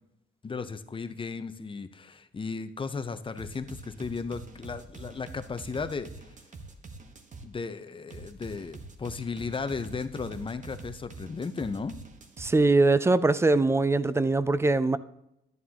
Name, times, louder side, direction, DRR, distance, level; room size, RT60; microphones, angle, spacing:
voice 1, 0.4-6.1 7.4-12.0, left 4 dB, 25° left, 11 dB, 0.7 m, -35 dB
sound 1, 3.4-7.5 8.1-12.5, right 3 dB, 40° right, 1.1 m, -45 dB
voice 2, 12.4-15.0, right 3 dB, 15° right, 15 dB, 0.4 m, -22 dB
11.0 x 9.4 x 2.9 m, 0.83 s
cardioid pair, 90°, 20 cm